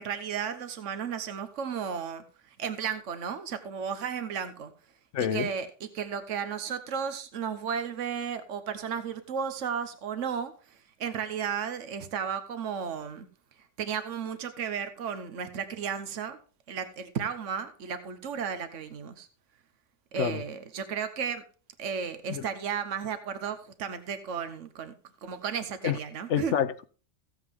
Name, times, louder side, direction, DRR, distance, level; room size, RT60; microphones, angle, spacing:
voice 1, 0.0-2.2 2.6-4.7 5.2-5.7 5.9-10.5 11.0-13.3 13.8-16.4 16.7-19.3 20.1-21.4 21.8-24.9 25.2-26.5, right 7 dB, 80° right, 1.3 m, -34 dB
voice 2, 5.1-5.5 20.2-20.4 22.3-22.5 25.8-26.0 26.3-26.9, left 9 dB, 75° left, 1.1 m, -27 dB
15.0 x 7.8 x 3.6 m
omnidirectional pair, 1.2 m